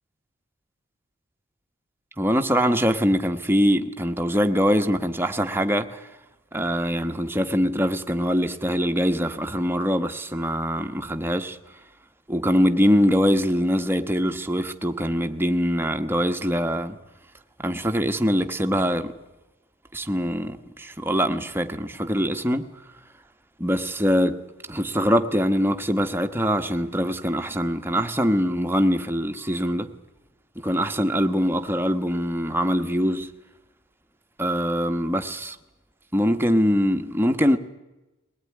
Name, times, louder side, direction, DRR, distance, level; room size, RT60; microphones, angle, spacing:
voice 1, 2.2-6.0 6.5-11.6 12.3-17.0 17.6-19.1 19.9-22.7 23.6-24.4 24.7-29.9 30.5-33.3 34.4-35.6 36.1-37.6, equal, 10° right, 1.2 m, -23 dB
21.5 x 19.0 x 9.7 m
head